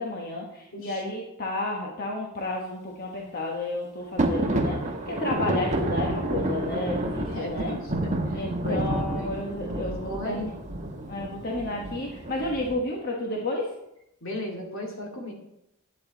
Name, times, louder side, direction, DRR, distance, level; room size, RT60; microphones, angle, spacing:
voice 1, 0.0-7.7 8.3-10.5 11.1-13.7, left 2 dB, 45° left, 0 dB, 1.2 m, -31 dB
voice 2, 0.7-1.0 7.2-9.3 9.6-10.4 14.2-15.3, left 1 dB, 65° left, 0 dB, 2.5 m, -36 dB
sound 1, 4.2-12.8, right 1 dB, 35° right, 1.3 m, -29 dB
11.0 x 9.0 x 4.1 m, 0.83 s
head